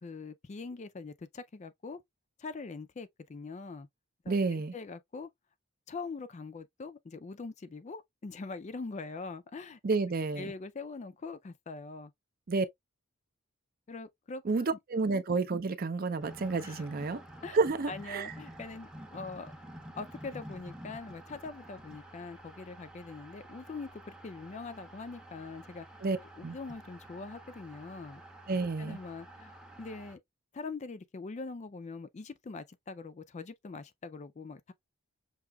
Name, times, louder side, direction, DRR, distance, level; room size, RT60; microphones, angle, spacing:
voice 1, 0.0-2.0 2.4-3.9 4.2-5.3 5.9-9.8 10.4-12.1 13.9-14.4 14.7-14.8 16.6-16.9 17.4-17.6 17.9-19.5 20.0-25.9 26.4-28.2 28.8-30.2 30.5-34.7, left 4 dB, 35° left, 0.4 m, -43 dB
voice 2, 4.3-4.7 9.8-10.5 12.5-12.7 14.5-17.2 17.5-18.3 26.0-26.2 26.4-26.6 28.5-29.0, right 4 dB, 45° right, 0.5 m, -30 dB
sound 1, 16.2-30.2, right 1 dB, 5° right, 0.6 m, -50 dB
6.0 x 2.7 x 2.2 m
head